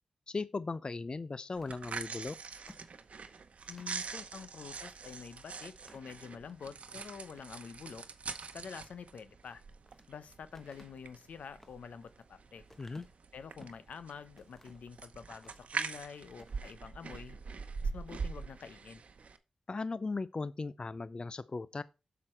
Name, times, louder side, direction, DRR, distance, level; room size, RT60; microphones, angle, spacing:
voice 1, 0.3-2.4 12.8-13.1 19.7-21.8, left 3 dB, 40° left, 0.4 m, -37 dB
sound 1, 1.5-4.0 4.6-4.8 5.1-5.2 5.7-6.6 7.1-7.6 9.4-10.1 10.5-13.9 14.4-14.9 15.3-16.1 16.3-16.6, left 1 dB, 15° left, 1.1 m, -60 dB
sound 2, 1.5-19.4, right 5 dB, 65° right, 0.9 m, -44 dB
voice 2, 3.7-8.0 8.5-9.6 10.1-12.6 13.3-17.4 17.8-19.0, left 6 dB, 85° left, 0.8 m, -47 dB
7.7 x 6.0 x 4.4 m
cardioid pair, 60°, 2 cm